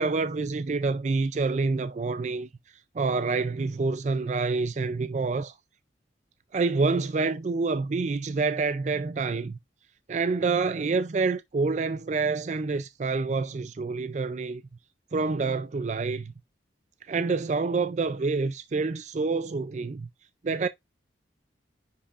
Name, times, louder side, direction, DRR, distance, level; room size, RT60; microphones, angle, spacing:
voice 1, 0.0-2.5 3.0-5.5 6.5-9.6 10.1-14.6 15.1-16.3 17.1-20.1 20.4-20.7, right 4 dB, 40° right, 0.4 m, -27 dB
9.9 x 5.6 x 2.5 m
head